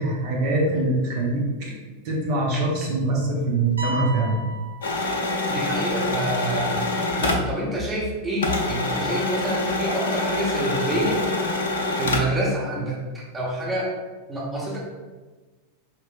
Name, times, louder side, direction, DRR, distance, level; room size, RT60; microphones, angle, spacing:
voice 1, 0.0-1.7 2.0-4.4, right 2 dB, 45° right, -3 dB, 0.9 m, -23 dB
sound 1, 3.8-5.7, right 2 dB, 75° right, 0.6 m, -34 dB
sound 2, 4.8-8.1 8.4-12.4, left 2 dB, 60° left, 0.6 m, -25 dB
voice 2, 5.5-6.8 7.2-11.2 12.0-13.0 13.3-13.9 14.3-14.8, right 1 dB, 10° right, -5 dB, 0.9 m, -27 dB
4.7 x 3.1 x 2.4 m, 1.3 s
figure-of-eight pair, 90°, 0 cm